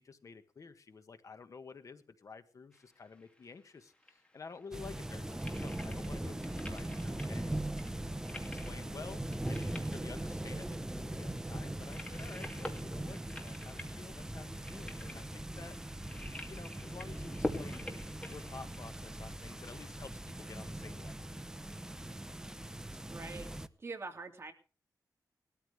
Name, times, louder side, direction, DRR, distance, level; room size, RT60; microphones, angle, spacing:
voice 1, 0.0-7.6 8.0-15.8 16.5-17.9 18.2-21.1, left 4 dB, 50° left, 9 dB, 1.5 m, -51 dB
sound 1, 2.7-19.3, left 1 dB, 15° left, 2.5 m, -47 dB
sound 2, 4.7-23.7, right 1 dB, 10° right, 0.7 m, -40 dB
voice 2, 23.1-23.5 23.8-24.5, right 3 dB, 35° right, 4 dB, 2.6 m, -44 dB
20.0 x 13.5 x 3.4 m, 0.34 s
wide cardioid pair, 140°, 7 cm